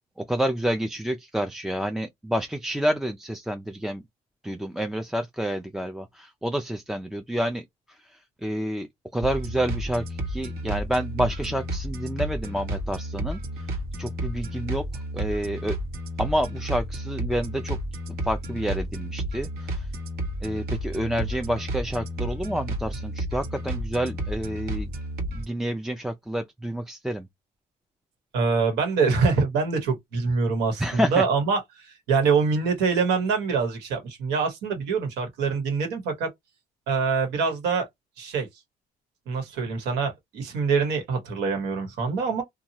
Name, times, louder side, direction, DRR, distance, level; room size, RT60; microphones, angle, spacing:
voice 1, 0.3-4.0 4.4-14.8 15.1-15.8 16.2-17.8 18.2-19.9 20.4-24.9 25.3-27.3 30.8-31.2, right 1 dB, 5° right, 0.3 m, -29 dB
sound 1, 9.2-25.5, right 1 dB, 65° right, 1.0 m, -32 dB
voice 2, 28.3-36.3 36.9-37.9 38.2-38.5 39.3-42.4, right 5 dB, 90° right, 1.2 m, -25 dB
2.8 x 2.3 x 2.7 m
cardioid pair, 110°, 17 cm